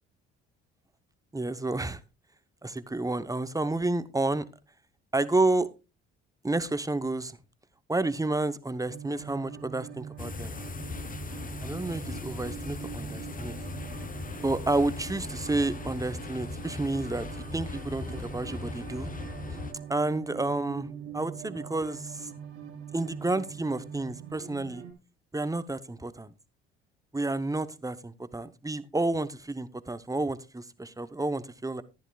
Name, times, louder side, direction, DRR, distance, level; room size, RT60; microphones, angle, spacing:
voice 1, 1.3-2.0 2.6-4.4 5.1-5.7 6.4-7.4 7.9-10.5 11.6-13.6 14.4-17.3 17.5-19.1 19.9-22.3 22.9-24.8 25.3-26.3 27.1-31.8, right 2 dB, 10° right, 13 dB, 0.9 m, -30 dB
sound 1, 8.8-24.9, right 8 dB, 90° right, 2.4 m, -43 dB
sound 2, 10.2-19.7, left 4 dB, 25° left, 1.0 m, -39 dB
14.0 x 10.5 x 2.4 m, 0.29 s
hypercardioid pair, 55°, 31 cm